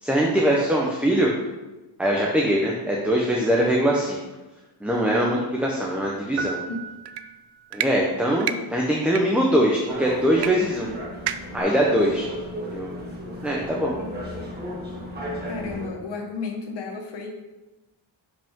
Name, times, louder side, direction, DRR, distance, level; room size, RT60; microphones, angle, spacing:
voice 1, 0.0-1.3 2.0-4.2 4.8-6.6 7.7-10.9 11.5-12.3 12.7-12.9 13.4-14.0, equal, 5° right, -2 dB, 0.8 m, -22 dB
voice 2, 6.4-6.9 15.5-17.5, left 4 dB, 60° left, 2 dB, 1.4 m, -33 dB
sound 1, 6.4-7.8, right 4 dB, 80° right, 0.9 m, -35 dB
sound 2, 7.1-7.2 7.7-7.9 8.4-8.6 9.1-9.2 10.4-10.5 10.8-10.9 11.3-11.6, right 10 dB, 55° right, 0.5 m, -28 dB
sound 3, 9.9-15.9, equal, 20° right, 1.9 m, -34 dB
11.0 x 5.5 x 3.7 m, 1.1 s
wide cardioid pair, 165°, 47 cm